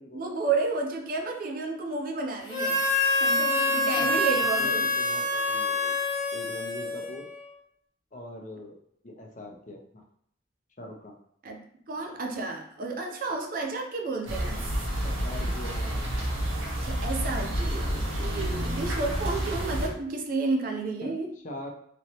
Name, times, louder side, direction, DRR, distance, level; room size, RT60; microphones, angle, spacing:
voice 1, 0.1-2.8 3.2-4.9 11.4-11.6 11.9-14.6 16.8-21.3, right 3 dB, 45° right, 2 dB, 0.5 m, -31 dB
Harmonica, 2.5-7.3, left 2 dB, 20° left, 0.9 m, -26 dB
voice 2, 3.9-6.0 6.3-7.3 8.1-8.7 9.0-10.0 10.8-11.2 15.0-16.1 21.0-21.7, left 1 dB, 40° left, 1 dB, 0.6 m, -42 dB
sound 1, 14.3-19.9, right 1 dB, 90° right, 0.8 m, -29 dB
3.0 x 2.8 x 2.9 m, 0.69 s
head